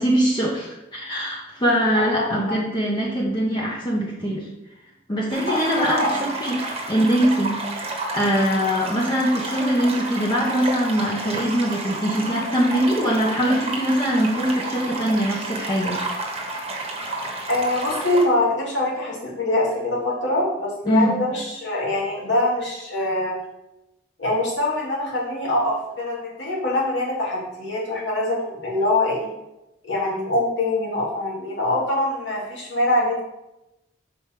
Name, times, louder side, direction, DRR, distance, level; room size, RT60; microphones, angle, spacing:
voice 1, 0.0-4.5 5.1-16.0 20.9-21.2, equal, 25° left, -4 dB, 1.1 m, -22 dB
voice 2, 1.9-2.6 5.5-6.3 17.5-23.4 24.2-29.3 29.8-33.2, left 1 dB, 75° left, -4 dB, 2.5 m, -24 dB
sound 1, 5.3-18.2, right 2 dB, 35° right, 1.3 m, -31 dB
5.3 x 4.6 x 5.9 m, 0.92 s
head